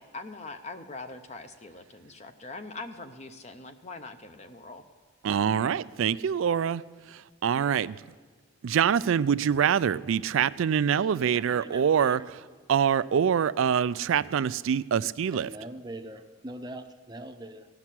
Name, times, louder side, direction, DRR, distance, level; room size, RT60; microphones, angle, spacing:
voice 1, 0.0-4.8, left 3 dB, 30° left, 0.6 m, -42 dB
voice 2, 5.2-6.8 7.4-7.9 8.6-12.2 12.7-15.5, right 8 dB, 65° right, 0.3 m, -25 dB
voice 3, 10.9-12.2 12.4-12.5 15.3-17.7, right 1 dB, 20° right, 0.6 m, -43 dB
16.0 x 6.0 x 9.8 m
head